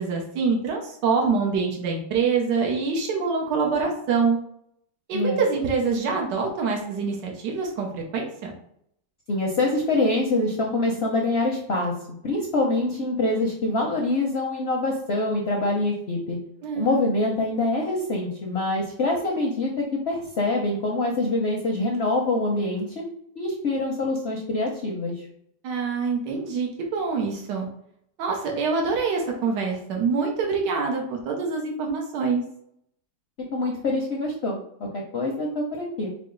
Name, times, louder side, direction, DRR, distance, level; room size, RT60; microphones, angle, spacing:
voice 1, 0.0-4.4 5.1-8.5 16.6-17.0 25.6-27.7 28.2-32.4, right 5 dB, 90° right, 1 dB, 1.4 m, -25 dB
voice 2, 5.1-5.4 9.3-11.9 12.2-16.4 16.8-22.9 23.4-25.3 33.5-36.1, left 2 dB, 60° left, -1 dB, 0.6 m, -25 dB
4.8 x 2.0 x 3.8 m, 0.71 s
omnidirectional pair, 1.8 m